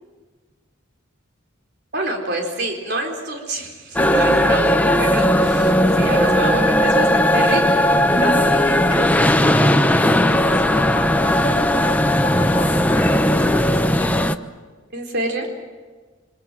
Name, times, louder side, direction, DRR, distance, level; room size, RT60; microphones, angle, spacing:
voice 1, 1.9-7.8 14.9-15.5, right 1 dB, 55° right, 1 dB, 4.2 m, -26 dB
sound 1, 4.0-14.4, left 1 dB, 10° left, 0.8 m, -17 dB
voice 2, 8.1-14.2, equal, 25° left, -1 dB, 4.8 m, -31 dB
27.0 x 25.5 x 7.6 m, 1.4 s
head